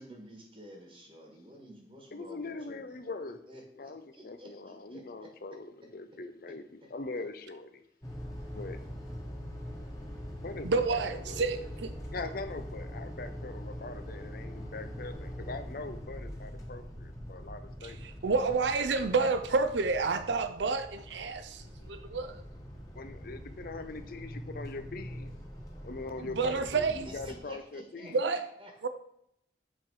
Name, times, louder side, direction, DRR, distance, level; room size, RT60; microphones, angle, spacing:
voice 1, 0.0-3.0 3.5-5.3 6.5-6.6 6.8-6.9 26.8-26.9 27.2-28.9, equal, 30° right, 1 dB, 1.4 m, -51 dB
voice 2, 2.1-3.4 3.8-7.8 8.5-8.8 10.4-11.6 12.1-18.0 22.9-25.3 25.8-28.3, left 3 dB, 55° left, 9 dB, 0.6 m, -42 dB
sound 1, 8.0-27.4, equal, 20° left, 1.5 m, -43 dB
voice 3, 10.6-11.9 17.8-22.4 26.2-27.1 28.1-28.4 28.8-28.9, right 4 dB, 80° right, 10 dB, 0.6 m, -29 dB
7.8 x 4.6 x 4.7 m, 0.76 s
head